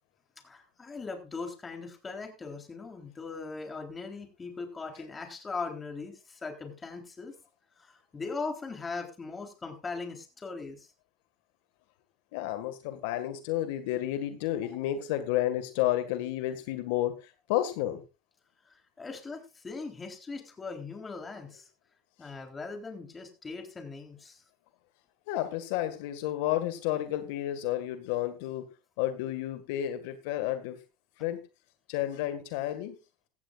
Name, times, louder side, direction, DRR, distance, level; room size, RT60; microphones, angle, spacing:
voice 1, 0.4-7.4 7.8-10.9 18.7-21.7 22.2-24.4, left 4 dB, 20° left, 5 dB, 3.7 m, -40 dB
voice 2, 12.3-18.0 25.3-28.6 29.0-30.8 31.2-31.4 31.9-33.0, left 13 dB, 75° left, 9 dB, 1.8 m, -31 dB
16.0 x 14.5 x 2.5 m, 0.28 s
supercardioid pair, 115°, 0 cm